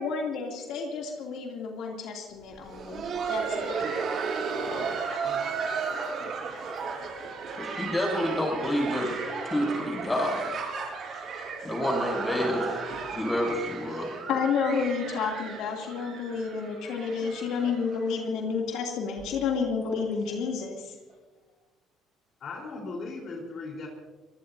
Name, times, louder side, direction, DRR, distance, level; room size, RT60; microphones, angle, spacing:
voice 1, 0.0-3.8 14.3-20.9, left 5 dB, 70° left, 0 dB, 2.7 m, -30 dB
Laughter, 2.5-18.2 18.5-18.6 19.2-19.3 19.8-20.0 21.1-21.2, right 5 dB, 45° right, 6.2 m, -34 dB
voice 2, 5.2-5.6 22.4-23.9, left 3 dB, 50° left, -1 dB, 4.0 m, -38 dB
voice 3, 7.6-9.2 9.4-10.7 11.6-12.8 13.1-14.2, left 1 dB, 15° left, 0 dB, 6.9 m, -29 dB
25.0 x 20.5 x 2.7 m, 1.3 s
cardioid pair, 135°, 0 cm